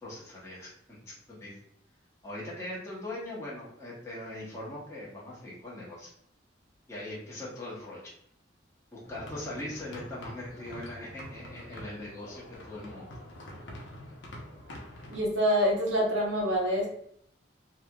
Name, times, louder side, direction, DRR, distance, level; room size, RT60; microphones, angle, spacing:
voice 1, 0.0-1.0 1.3-1.6 2.2-6.1 6.9-8.0 8.9-13.0, left 1 dB, 15° left, -7 dB, 0.9 m, -41 dB
sound 1, 9.0-15.2, left 1 dB, 75° left, 0.8 m, -46 dB
voice 2, 15.1-16.9, equal, 85° right, -3 dB, 1.2 m, -26 dB
3.1 x 2.8 x 2.3 m, 0.68 s
head